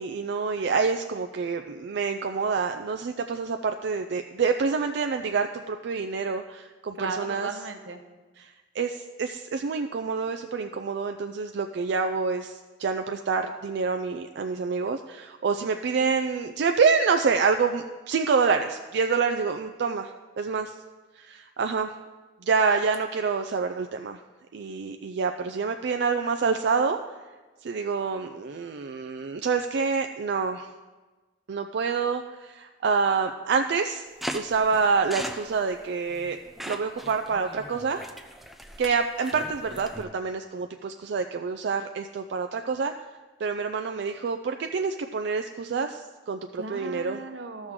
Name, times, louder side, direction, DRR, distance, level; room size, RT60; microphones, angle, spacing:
voice 1, 0.0-7.5 8.4-20.7 21.2-21.9 22.5-24.2 24.5-27.0 27.6-30.7 31.5-34.0 34.3-36.4 36.6-38.1 38.8-42.9 43.4-47.2, right 5 dB, 65° right, 6 dB, 0.4 m, -27 dB
voice 2, 7.0-8.0 46.5-47.7, right 4 dB, 85° right, 6 dB, 0.9 m, -36 dB
sound 1, 34.2-40.0, equal, ahead, 0.5 m, -39 dB
14.0 x 6.2 x 3.7 m, 1.3 s
head